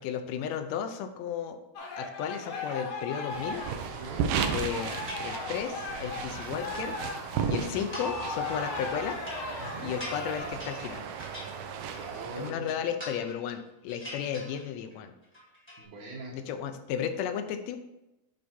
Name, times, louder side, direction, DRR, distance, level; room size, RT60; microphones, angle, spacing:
voice 1, 0.0-1.6 2.0-4.0 4.5-7.0 7.5-9.2 9.8-11.0 12.4-15.1 16.3-17.8, left 8 dB, 80° left, 7 dB, 1.7 m, -34 dB
sound 1, 1.8-10.5, left 3 dB, 55° left, 1.6 m, -38 dB
sound 2, 3.3-12.5, right 7 dB, 90° right, 2.2 m, -35 dB
voice 2, 3.9-4.3 9.6-9.9 11.8-12.7 15.8-16.3, right 3 dB, 70° right, -4 dB, 2.3 m, -42 dB
sound 3, 5.1-5.8 6.1-7.2 7.7-8.4 8.7-12.2 12.5-13.6 13.9-15.0 15.2-15.8, left 1 dB, 10° left, 0.8 m, -45 dB
9.4 x 3.4 x 4.3 m, 0.93 s
omnidirectional pair, 3.4 m